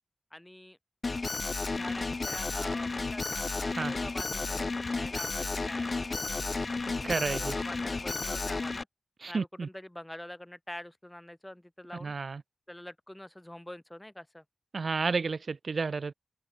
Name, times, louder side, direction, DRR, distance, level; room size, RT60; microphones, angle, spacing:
voice 1, 0.3-0.8 1.7-6.8 7.3-8.9 9.3-12.1 12.7-14.4, left 1 dB, 10° left, 3.4 m, -45 dB
Alarm, 1.0-8.8, left 3 dB, 45° left, 0.4 m, -32 dB
voice 2, 7.0-7.5 9.2-9.7 12.0-12.4 14.7-16.1, right 4 dB, 60° right, 1.1 m, -31 dB
wide cardioid pair, 95°, 0 cm